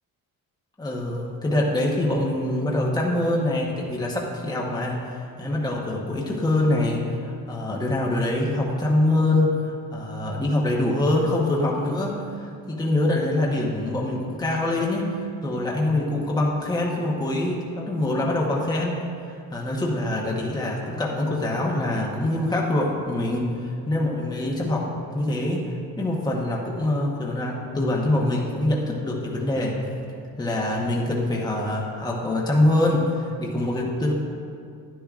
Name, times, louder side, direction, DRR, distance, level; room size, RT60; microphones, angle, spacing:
voice 1, 0.8-24.9 25.1-25.7 26.0-29.8 30.4-34.1, left 1 dB, 10° left, -3 dB, 1.0 m, -24 dB
10.5 x 10.5 x 2.5 m, 2.4 s
cardioid pair, 115°, 36 cm